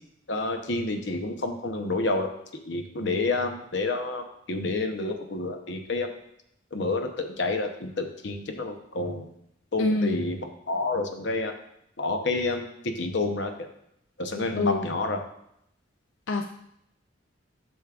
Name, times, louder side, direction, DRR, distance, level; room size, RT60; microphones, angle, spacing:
voice 1, 0.3-2.3 2.7-6.1 6.7-9.2 9.7-10.4 10.7-11.5 12.0-13.5 14.2-15.2, left 2 dB, 65° left, 5 dB, 0.8 m, -29 dB
voice 2, 9.8-10.3 14.6-14.8 16.3-16.5, left 3 dB, 90° left, 5 dB, 0.5 m, -26 dB
8.3 x 6.2 x 2.4 m, 0.75 s
head